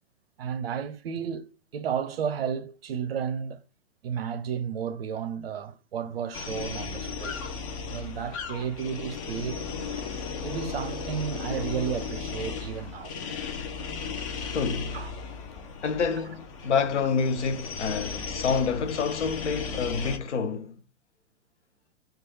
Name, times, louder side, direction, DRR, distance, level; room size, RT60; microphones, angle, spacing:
voice 1, 0.4-3.6 4.0-7.5 7.9-9.6 10.4-13.1 14.9-15.1, right 7 dB, 55° right, 0.5 m, -32 dB
sound 1, 6.3-20.2, left 5 dB, 30° left, 0.5 m, -36 dB
voice 2, 14.5-15.0 15.8-20.8, left 5 dB, 75° left, 0.6 m, -28 dB
3.1 x 2.3 x 4.0 m
figure-of-eight pair, 115°, 35 cm